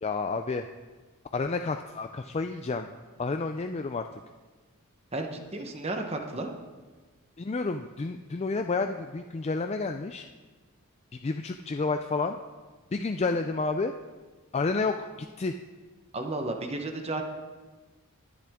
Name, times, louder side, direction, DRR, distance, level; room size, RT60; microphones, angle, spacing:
voice 1, 0.0-0.7 1.3-2.9 3.2-4.1 7.4-10.3 11.2-12.4 12.9-13.9 14.5-15.1 15.4-15.5, left 3 dB, 30° left, 6 dB, 0.3 m, -30 dB
voice 2, 5.1-6.5 16.1-17.2, right 2 dB, 30° right, 4 dB, 1.0 m, -33 dB
20.5 x 8.4 x 3.6 m, 1.3 s
head